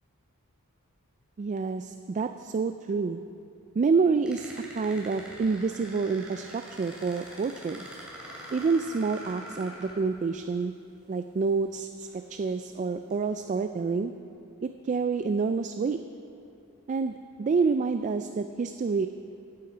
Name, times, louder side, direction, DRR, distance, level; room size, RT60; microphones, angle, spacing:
voice 1, 1.4-3.2 3.8-7.9 8.5-10.7 11.1-14.1 14.6-16.0 16.9-19.1, right 4 dB, 35° right, 8 dB, 0.3 m, -28 dB
sound 1, 4.3-10.5 11.4-11.5 12.0-12.5 13.1-13.3, equal, 5° right, 2.8 m, -44 dB
16.5 x 8.8 x 5.0 m, 2.7 s
head